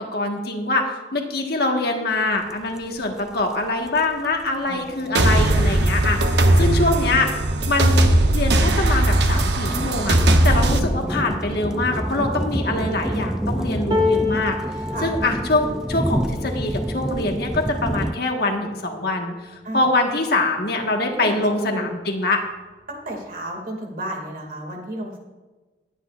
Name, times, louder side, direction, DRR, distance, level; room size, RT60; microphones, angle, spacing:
voice 1, 0.0-6.2 6.6-7.3 7.7-8.1 8.3-14.5 15.0-22.4, left 2 dB, 60° left, 2 dB, 1.5 m, -24 dB
sound 1, 2.5-2.6 2.8-18.1, equal, 5° right, 0.3 m, -28 dB
voice 2, 4.6-5.8 14.9-15.1 19.6-19.8 21.1-21.8 22.9-25.2, right 1 dB, 50° right, 1 dB, 2.3 m, -33 dB
sound 2, 5.1-10.8, right 1 dB, 65° right, 0.9 m, -18 dB
sound 3, 13.9-20.1 20.6-20.8 21.1-21.9 22.9-23.0, left 4 dB, 25° right, 1.0 m, -30 dB
19.5 x 9.3 x 2.5 m, 1.2 s
head